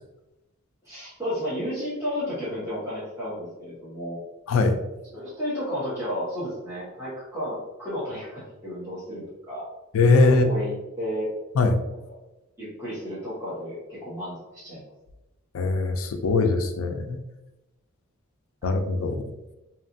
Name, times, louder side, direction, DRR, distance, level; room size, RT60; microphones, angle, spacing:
voice 1, 0.8-4.2 5.1-9.7 10.4-11.3 12.6-14.8, equal, 10° right, -12 dB, 0.9 m, -32 dB
voice 2, 9.9-10.5 11.6-11.7 15.5-17.2 18.6-19.2, left 3 dB, 65° left, 6 dB, 0.4 m, -21 dB
2.8 x 2.4 x 2.5 m, 0.99 s
head